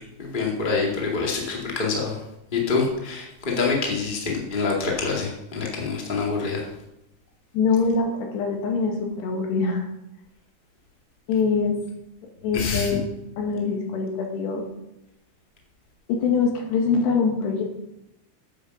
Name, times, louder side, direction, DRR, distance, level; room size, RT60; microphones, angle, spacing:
voice 1, 0.2-2.2 2.5-6.7 12.5-13.0, left 4 dB, 35° left, -1 dB, 0.7 m, -26 dB
voice 2, 7.5-9.9 11.3-11.8 12.4-13.0 13.4-14.6 16.1-17.6, left 5 dB, 70° left, 1 dB, 3.9 m, -23 dB
9.2 x 8.7 x 6.7 m, 0.87 s
omnidirectional pair, 5.2 m